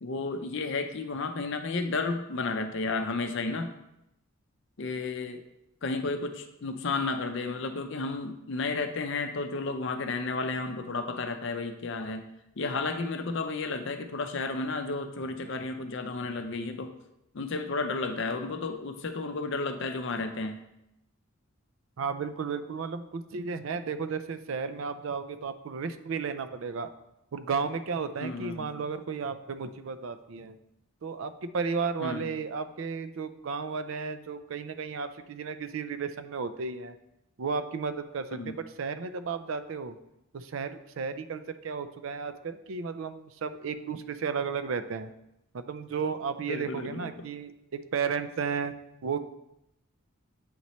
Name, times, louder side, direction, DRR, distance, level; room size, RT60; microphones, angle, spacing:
voice 1, 0.0-3.7 4.8-5.4 5.8-12.3 12.6-16.9 17.3-20.6 28.2-28.6 32.0-32.3 38.3-38.5 46.5-47.3, left 3 dB, 55° left, 7 dB, 0.5 m, -32 dB
voice 2, 22.0-26.9 27.3-30.6 31.0-37.0 37.4-40.0 40.3-45.1 45.5-48.7 49.0-49.2, right 5 dB, 65° right, 11 dB, 0.4 m, -33 dB
7.9 x 3.0 x 4.1 m, 0.86 s
head